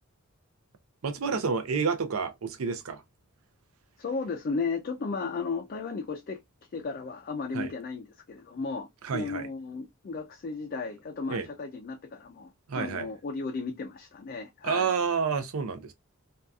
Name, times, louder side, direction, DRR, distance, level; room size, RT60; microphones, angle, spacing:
voice 1, 1.0-3.0 7.5-7.7 9.0-9.5 11.3-11.5 12.7-13.1 14.6-15.9, right 5 dB, 75° right, 0.5 m, -29 dB
voice 2, 4.0-6.4 6.7-14.9, left 4 dB, 45° left, 0.3 m, -35 dB
2.6 x 2.3 x 2.2 m
head